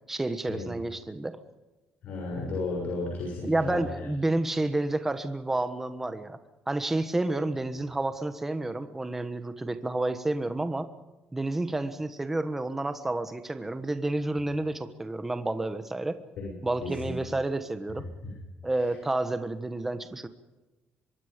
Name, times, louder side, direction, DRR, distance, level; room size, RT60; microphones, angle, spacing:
voice 1, 0.1-1.4 3.4-6.4 6.7-10.9 11.3-16.2 16.6-18.1 18.6-20.3, right 2 dB, 10° right, 9 dB, 1.3 m, -30 dB
voice 2, 2.0-4.1 16.4-16.5 16.8-17.1 18.2-18.3 18.7-18.9, left 3 dB, 55° left, -1 dB, 6.9 m, -34 dB
25.0 x 22.5 x 5.2 m, 1.1 s
cardioid pair, 180°, 3 cm